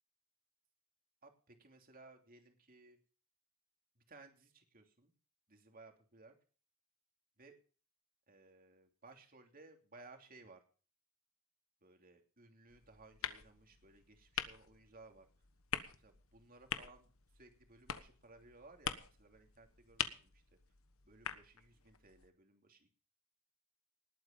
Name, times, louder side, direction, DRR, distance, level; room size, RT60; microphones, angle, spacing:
voice 1, 1.2-3.0 4.0-5.1 5.5-6.3 7.4-7.5 8.3-10.6 11.8-15.3 15.9-17.1 17.3-20.4 21.0-23.0, right 3 dB, 40° right, 4 dB, 2.9 m, -60 dB
sound 1, 12.7-22.3, left 8 dB, 70° left, 1.3 m, -46 dB
19.5 x 8.8 x 5.3 m, 0.40 s
head